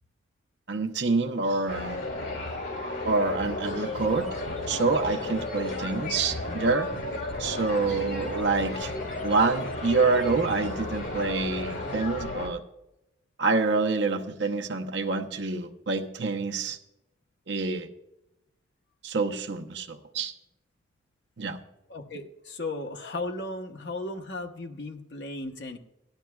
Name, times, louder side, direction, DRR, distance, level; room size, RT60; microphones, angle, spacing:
voice 1, 0.7-2.0 3.1-4.3 4.7-6.9 7.4-8.9 9.2-12.6 13.4-16.8 17.5-17.9 19.0-20.3 21.4-21.6, right 3 dB, 65° right, 5 dB, 0.9 m, -27 dB
sound 1, 1.7-12.5, left 2 dB, 90° left, 3.4 m, -33 dB
sound 2, 3.7-12.1, right 1 dB, 5° left, 1.7 m, -51 dB
voice 2, 21.9-25.8, left 2 dB, 60° left, 4 dB, 1.1 m, -35 dB
17.0 x 11.5 x 2.3 m, 0.90 s
head